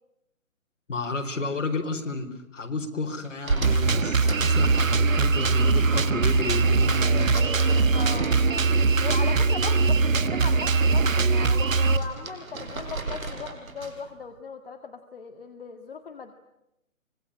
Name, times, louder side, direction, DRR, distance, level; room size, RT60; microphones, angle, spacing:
voice 1, 0.9-7.5, left 3 dB, 60° left, 4 dB, 4.6 m, -31 dB
sound 1, 3.4-5.5 5.8-9.3 9.6-10.5 10.9-14.1, right 3 dB, 85° right, 5.4 m, -36 dB
Drum kit, 3.6-12.0, right 4 dB, 70° right, 1.6 m, -21 dB
voice 2, 7.9-8.6 9.0-16.3, left 5 dB, 40° left, 5 dB, 1.8 m, -38 dB
25.5 x 20.5 x 9.9 m, 0.88 s
hypercardioid pair, 160°, 41 cm